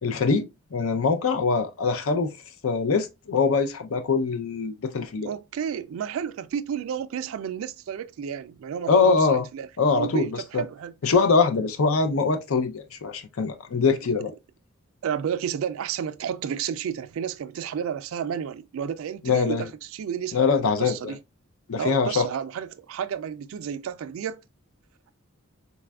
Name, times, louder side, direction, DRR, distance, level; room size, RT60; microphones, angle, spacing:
voice 1, 0.0-2.3 2.6-5.3 8.9-9.5 9.8-10.6 11.0-14.3 19.2-19.7 20.3-21.1 21.7-22.3, left 4 dB, 80° left, 0.5 m, -23 dB
voice 2, 5.2-9.7 9.9-10.9 15.0-21.2 21.8-24.4, right 8 dB, 75° right, 0.3 m, -31 dB
4.1 x 2.3 x 2.2 m
head